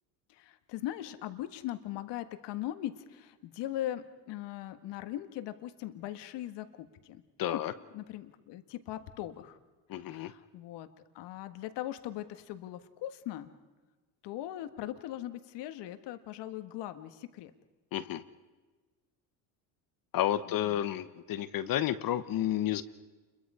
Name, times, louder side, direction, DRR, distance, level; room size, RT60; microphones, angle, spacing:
voice 1, 0.3-7.6 7.9-9.6 10.0-10.9 11.1-13.5 14.2-17.5 20.5-20.8, left 13 dB, 65° left, 9 dB, 1.7 m, -40 dB
voice 2, 7.4-7.7 9.9-10.3 17.9-18.2 20.1-22.8, left 12 dB, 50° left, 12 dB, 1.1 m, -31 dB
29.0 x 22.5 x 5.0 m, 1.3 s
supercardioid pair, 115°, 45 cm